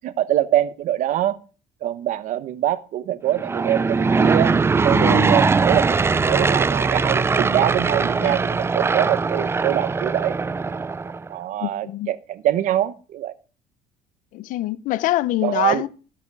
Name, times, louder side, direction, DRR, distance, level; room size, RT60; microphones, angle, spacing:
voice 1, 0.0-1.4 1.8-4.5 4.8-6.0 6.2-10.3 11.3-13.3 15.4-15.9, right 12 dB, 65° right, 1.0 m, -24 dB
Aircraft / Engine, 3.3-11.3, right 4 dB, 15° right, 0.4 m, -21 dB
voice 2, 4.9-5.4 8.2-8.3 11.6-12.1 14.3-15.9, left 15 dB, 70° left, 0.7 m, -25 dB
13.5 x 8.0 x 4.8 m
cardioid pair, 110°, 14 cm